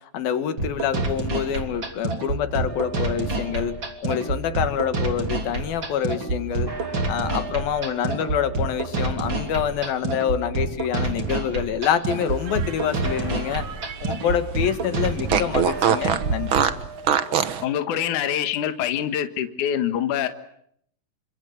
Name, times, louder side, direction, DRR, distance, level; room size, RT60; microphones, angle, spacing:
voice 1, 0.1-3.8 4.0-6.7 7.1-13.7 14.0-16.5, left 9 dB, 85° left, 11 dB, 3.6 m, -26 dB
sound 1, 0.6-16.6, right 3 dB, 35° right, 3.9 m, -28 dB
sound 2, 2.7-4.7 6.5-10.2 10.7-11.7 12.9-14.0 15.5-18.2, right 1 dB, 5° right, 2.9 m, -40 dB
Fart, 12.3-14.3 14.6-14.7 15.3-17.6, right 8 dB, 65° right, 1.3 m, -24 dB
voice 2, 17.6-20.3, left 10 dB, 65° left, 9 dB, 2.9 m, -25 dB
28.5 x 25.5 x 8.1 m, 0.70 s
omnidirectional pair, 4.1 m